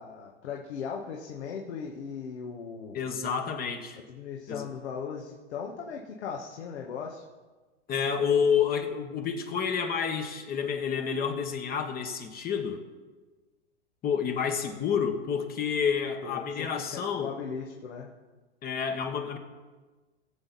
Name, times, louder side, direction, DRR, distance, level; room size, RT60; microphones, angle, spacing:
voice 1, 0.0-3.0 4.0-7.2 16.2-18.1, left 6 dB, 70° left, 0 dB, 1.7 m, -38 dB
voice 2, 2.9-4.0 4.5-4.7 7.9-12.9 14.0-17.4 18.6-19.4, left 7 dB, 25° left, 5 dB, 1.3 m, -29 dB
19.5 x 7.7 x 4.2 m, 1.3 s
hypercardioid pair, 115°, 34 cm